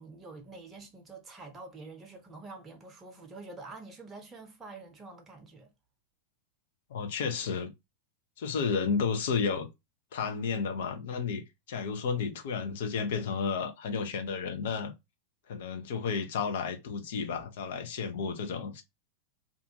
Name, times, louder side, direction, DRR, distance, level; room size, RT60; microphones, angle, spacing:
voice 1, 0.0-5.7, right 3 dB, 20° right, 0.8 m, -47 dB
voice 2, 6.9-7.7 8.4-9.7 10.1-14.9 15.5-18.8, left 5 dB, 55° left, 0.6 m, -32 dB
2.5 x 2.4 x 2.7 m
figure-of-eight pair, 90°, 0 cm